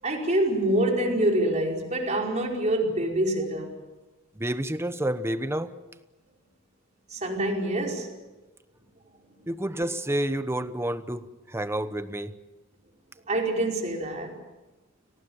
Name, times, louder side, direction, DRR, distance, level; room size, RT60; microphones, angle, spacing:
voice 1, 0.0-3.7 7.1-8.1 13.3-14.4, right 1 dB, 35° right, 0 dB, 5.1 m, -26 dB
voice 2, 4.4-5.7 9.5-11.3 11.5-12.3, right 1 dB, 15° right, 12 dB, 1.0 m, -29 dB
29.5 x 19.0 x 7.2 m, 1.1 s
head